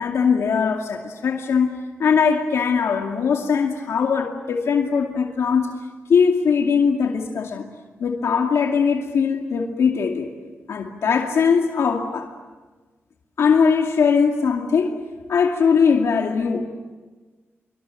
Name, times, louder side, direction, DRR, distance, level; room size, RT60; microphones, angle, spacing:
voice 1, 0.0-5.7 6.1-7.7 8.0-10.3 10.7-12.3 13.4-15.0 15.3-16.6, left 6 dB, 80° left, 2 dB, 2.5 m, -20 dB
26.0 x 25.0 x 9.1 m, 1.3 s
wide cardioid pair, 125°, 5 cm